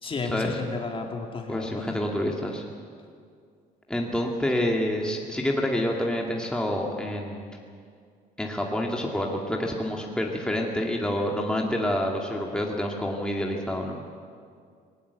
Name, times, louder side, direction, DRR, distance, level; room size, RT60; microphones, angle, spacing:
voice 1, 0.0-1.9, left 4 dB, 30° left, 3 dB, 2.7 m, -32 dB
voice 2, 1.5-2.6 3.9-7.6 8.4-14.0, left 1 dB, 5° left, 0 dB, 2.2 m, -28 dB
19.0 x 19.0 x 8.2 m, 2.2 s
cardioid pair, 110°, 17 cm